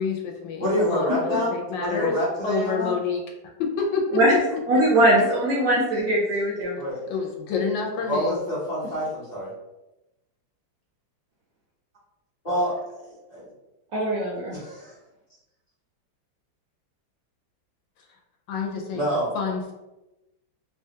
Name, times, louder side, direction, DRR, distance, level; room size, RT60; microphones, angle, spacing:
voice 1, 0.0-2.2 2.4-3.2 3.6-4.8 7.1-8.4 18.5-19.1 19.3-19.7, left 5 dB, 80° left, 1 dB, 1.3 m, -28 dB
voice 2, 0.6-1.5 1.8-2.9 6.8-7.0 8.0-9.5 12.4-13.5 14.4-14.9 18.9-19.3, equal, 30° left, -9 dB, 0.7 m, -27 dB
voice 3, 4.7-6.8 13.9-14.5, right 1 dB, 65° right, -4 dB, 0.9 m, -21 dB
3.2 x 2.3 x 2.7 m, 0.97 s
omnidirectional pair, 2.1 m